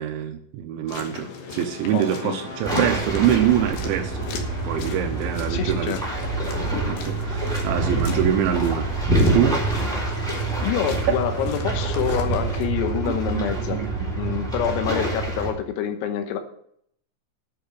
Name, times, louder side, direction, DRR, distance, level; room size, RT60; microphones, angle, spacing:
voice 1, 0.0-4.3 4.6-6.0 6.9-8.9 9.3-9.8 13.3-13.4 13.7-14.1, right 10 dB, 80° right, 6 dB, 2.8 m, -24 dB
Brass instrument, 0.8-5.0, equal, 40° left, 2.5 m, -43 dB
sound 1, 0.9-12.6, left 5 dB, 65° left, 2.5 m, -38 dB
voice 2, 1.9-2.4 5.5-6.0 10.1-10.3 10.6-13.8 14.2-16.4, left 9 dB, 85° left, 7 dB, 3.9 m, -27 dB
sound 2, 2.6-15.5, right 2 dB, ahead, 2.6 m, -26 dB
10.5 x 6.1 x 8.2 m, 0.66 s
omnidirectional pair, 5.9 m